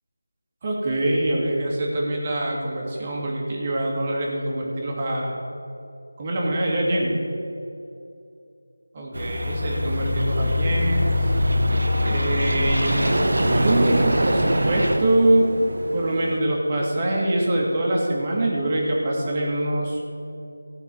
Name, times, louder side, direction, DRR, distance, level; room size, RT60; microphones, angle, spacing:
voice 1, 0.6-5.4 6.2-7.2 8.9-11.3 12.0-13.1 13.4-15.5 15.9-20.0, right 1 dB, 25° right, -3 dB, 2.0 m, -24 dB
sound 1, 9.1-15.0, left 1 dB, 70° right, 1.6 m, -24 dB
sound 2, 9.5-14.8, equal, 10° right, 1.3 m, -31 dB
sound 3, 10.7-16.4, right 2 dB, 55° right, 1.1 m, -28 dB
15.0 x 6.0 x 8.6 m, 2.7 s
figure-of-eight pair, 170°, 0 cm